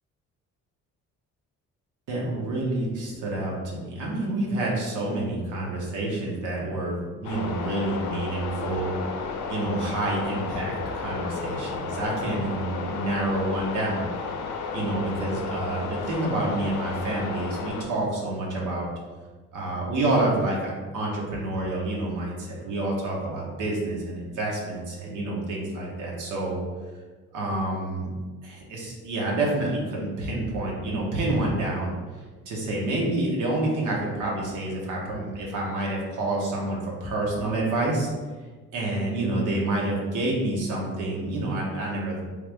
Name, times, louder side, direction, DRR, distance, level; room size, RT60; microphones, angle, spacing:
voice 1, 2.1-9.0 9.5-14.1 14.7-18.9 19.5-26.6 27.3-28.1 28.4-31.9 32.5-38.1 38.7-42.2, right 2 dB, 85° right, -3 dB, 1.0 m, -28 dB
sound 1, 7.2-17.8, left 4 dB, 85° left, 0.5 m, -33 dB
3.3 x 2.4 x 3.4 m, 1.4 s
cardioid pair, 90°, 30 cm